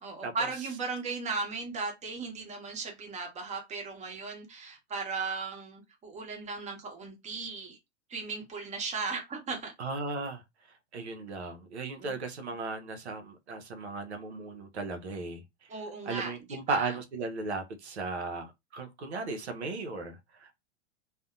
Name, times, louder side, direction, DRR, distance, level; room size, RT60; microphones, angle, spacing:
voice 1, 0.0-7.8 8.1-9.7 12.0-12.2 15.7-17.0, right 4 dB, 20° right, 0.9 m, -37 dB
voice 2, 9.8-10.4 10.9-15.4 16.1-20.6, right 3 dB, 80° right, 0.6 m, -36 dB
2.5 x 2.1 x 2.4 m
figure-of-eight pair, 90°, 33 cm